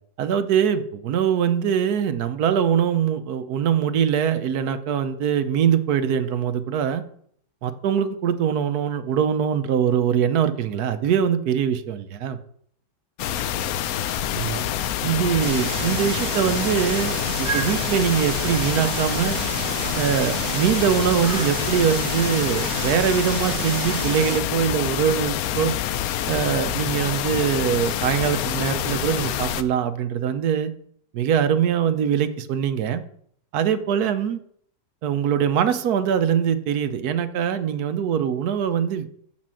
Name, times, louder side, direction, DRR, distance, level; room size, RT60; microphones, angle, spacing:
voice 1, 0.2-7.0 7.6-12.4 14.3-14.6 15.0-19.4 19.9-25.7 26.3-30.7 31.1-33.0 33.5-34.4 35.0-39.1, right 8 dB, 70° right, 10 dB, 1.2 m, -23 dB
sound 1, 13.2-29.6, left 11 dB, 70° left, 0.9 m, -27 dB
sound 2, 15.4-24.4, right 6 dB, 50° right, 1.1 m, -31 dB
7.0 x 5.9 x 7.5 m, 0.64 s
omnidirectional pair, 1.8 m